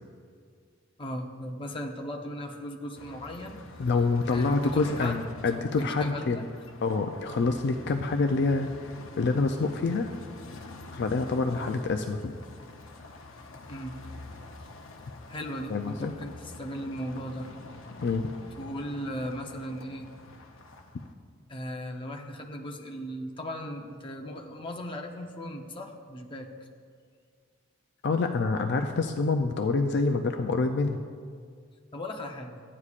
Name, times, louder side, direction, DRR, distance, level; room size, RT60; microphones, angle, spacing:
voice 1, 1.0-3.6 4.3-5.3 5.8-6.4 10.5-10.6 11.5-11.7 13.7-14.0 15.3-17.5 18.6-20.1 21.5-26.5 31.9-32.6, equal, 25° left, 1 dB, 0.8 m, -37 dB
sound 1, 2.9-21.1, left 2 dB, 90° left, 0.7 m, -46 dB
voice 2, 3.8-6.4 6.8-10.1 10.9-12.3 15.7-16.1 18.0-18.3 28.0-31.0, left 3 dB, 60° left, 5 dB, 0.4 m, -27 dB
14.5 x 9.6 x 2.4 m, 2.1 s
head